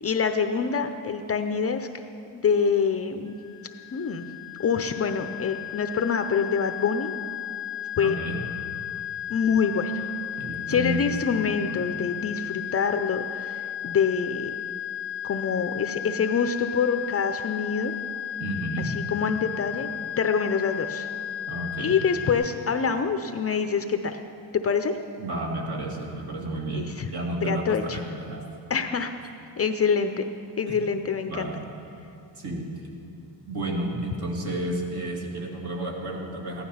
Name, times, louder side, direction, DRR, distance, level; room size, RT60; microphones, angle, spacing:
voice 1, 0.0-1.9 2.3-3.3 3.9-4.3 4.6-7.2 8.0-8.1 9.3-10.1 10.7-14.5 15.2-17.9 19.1-19.9 20.2-21.1 21.8-24.2 24.5-25.0 26.7-27.1 27.4-28.0 28.7-29.1 29.6-30.2 30.6-31.5, left 6 dB, 30° left, 7 dB, 0.5 m, -25 dB
sound 1, 3.3-22.3, left 10 dB, 30° right, 3.1 m, -34 dB
voice 2, 8.0-8.4 10.4-11.4 11.7-11.8 18.4-18.9 21.5-22.0 25.2-28.4 30.7-30.8 31.3-31.6 32.4-32.7 33.4-36.7, right 1 dB, 55° right, -1 dB, 2.5 m, -31 dB
15.5 x 11.5 x 5.6 m, 2.7 s
cardioid pair, 135°, 46 cm